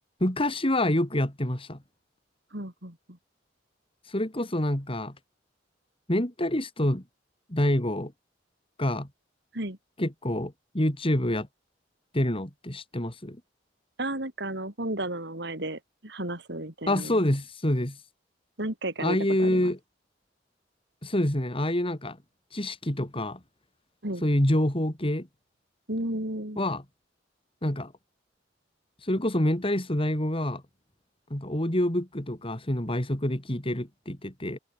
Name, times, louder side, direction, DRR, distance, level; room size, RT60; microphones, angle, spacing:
voice 1, 0.2-1.8 4.1-5.1 6.1-7.0 7.5-8.1 8.8-9.1 10.0-11.5 12.1-13.4 16.9-18.0 19.0-19.8 21.0-22.2 22.5-23.4 24.2-25.3 26.6-26.8 27.6-27.9 29.0-30.6 31.3-34.6, left 1 dB, 30° left, 3.3 m, -27 dB
voice 2, 2.5-3.2 9.5-9.8 14.0-17.2 18.6-19.7 24.0-24.2 25.9-26.6, right 1 dB, 65° right, 5.9 m, -33 dB
head